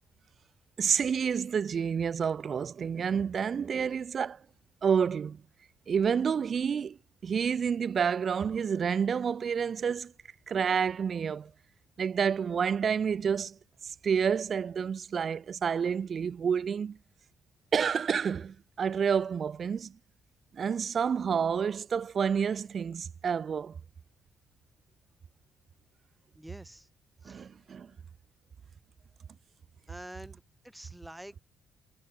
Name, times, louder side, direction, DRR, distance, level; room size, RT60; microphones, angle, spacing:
voice 1, 0.8-4.4 4.8-5.4 5.9-7.0 7.2-10.1 10.5-11.5 12.0-13.6 13.8-17.0 17.7-19.9 20.5-23.8 27.2-27.9, right 7 dB, 50° right, 2.9 m, -29 dB
voice 2, 26.3-26.9 27.2-27.5 29.9-31.4, right 1 dB, 5° right, 7.2 m, -47 dB
cardioid pair, 90°, 0 cm